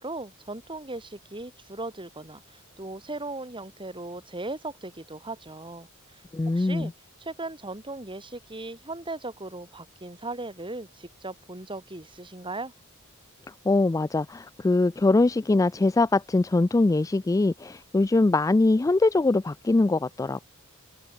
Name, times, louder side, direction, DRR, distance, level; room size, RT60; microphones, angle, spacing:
voice 1, 0.0-5.9 6.1-6.2 6.5-6.9 7.2-12.7, right 2 dB, 25° right, 4.7 m, -38 dB
voice 2, 6.3-6.9 13.7-20.4, left 2 dB, 15° left, 0.3 m, -22 dB
open air
head